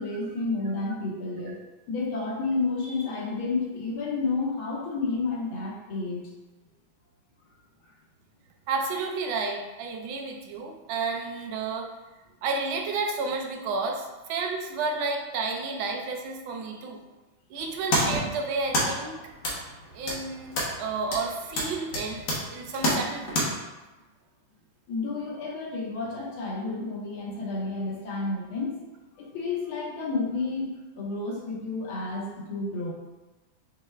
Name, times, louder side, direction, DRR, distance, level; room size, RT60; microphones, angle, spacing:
voice 1, 0.0-6.3 24.9-28.8 29.2-32.9, left 3 dB, 85° left, -4 dB, 1.8 m, -31 dB
voice 2, 8.7-11.9 12.4-17.0 17.5-19.2 19.9-23.4, right 4 dB, 80° right, 2 dB, 1.4 m, -31 dB
sound 1, 17.6-23.4, equal, 65° left, 1.6 m, -30 dB
6.8 x 3.2 x 2.2 m, 1.1 s
omnidirectional pair, 2.2 m